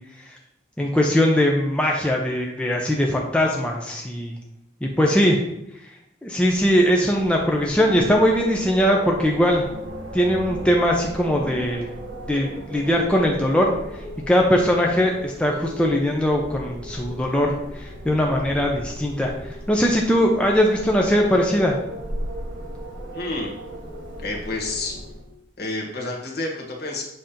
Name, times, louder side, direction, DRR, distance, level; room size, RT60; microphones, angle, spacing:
voice 1, 0.8-4.3 4.8-5.4 6.2-9.7 10.1-11.9 12.3-13.7 14.3-21.8, equal, 5° left, 0 dB, 0.5 m, -20 dB
Wind, 6.3-25.4, right 1 dB, 85° right, 1.5 m, -36 dB
voice 2, 23.1-23.6 24.2-24.9 25.6-27.0, left 2 dB, 55° left, -1 dB, 1.4 m, -29 dB
7.6 x 2.9 x 5.1 m, 0.83 s
head